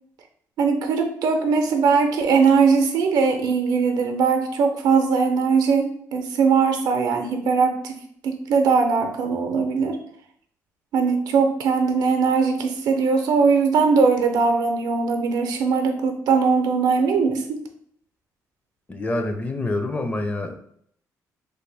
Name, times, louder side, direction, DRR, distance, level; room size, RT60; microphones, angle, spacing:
voice 1, 0.6-10.0 10.9-17.6, right 5 dB, 80° right, 5 dB, 0.6 m, -20 dB
voice 2, 18.9-20.6, left 2 dB, 25° left, 5 dB, 0.5 m, -26 dB
3.3 x 2.2 x 3.3 m, 0.65 s
cardioid pair, 95°, 7 cm